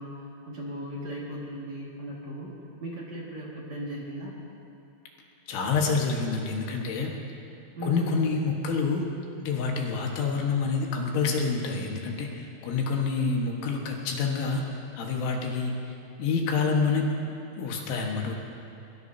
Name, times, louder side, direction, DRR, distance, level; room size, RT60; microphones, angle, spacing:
voice 1, 0.0-2.5 2.8-4.3 7.8-8.2, equal, 45° right, -5 dB, 2.6 m, -37 dB
voice 2, 5.5-7.1 7.8-9.1 9.4-14.6 15.0-17.1 17.6-18.3, left 4 dB, 75° left, 0 dB, 3.9 m, -27 dB
22.5 x 22.5 x 2.8 m, 2.7 s
omnidirectional pair, 5.6 m